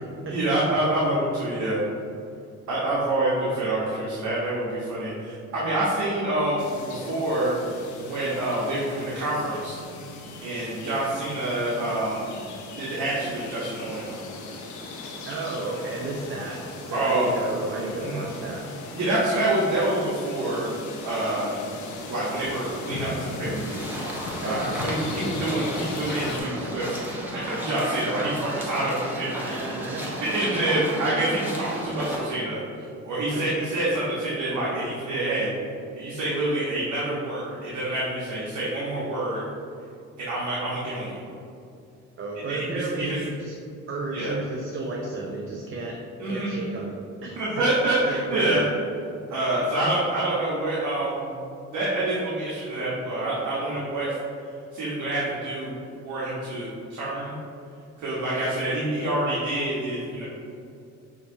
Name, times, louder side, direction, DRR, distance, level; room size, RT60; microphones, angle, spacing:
voice 1, 0.3-1.8 2.7-7.5 8.0-9.8 10.4-12.3 12.8-14.2 16.9-17.5 18.0-18.3 18.9-20.7 21.0-21.5 22.1-23.9 24.4-26.9 27.3-29.6 30.2-35.5 35.9-39.4 40.2-41.2 42.5-43.2 44.1-44.3 46.2-46.6 47.4-48.6 49.3-51.3 51.7-54.1 54.7-55.7 56.0-57.3 58.0-60.2, right 1 dB, 75° right, -7 dB, 1.1 m, -27 dB
sound 1, 6.6-26.4, left 2 dB, 75° left, 0.7 m, -38 dB
voice 2, 15.3-18.7 24.4-24.8 29.4-31.0 33.3-33.9 42.2-43.5 43.9-46.0 46.2-47.4 48.1-48.7, right 2 dB, 45° right, -1 dB, 0.6 m, -33 dB
sound 2, 23.5-32.3, equal, 5° right, 1.0 m, -34 dB
6.8 x 2.8 x 2.6 m, 2.5 s
cardioid pair, 90°, 30 cm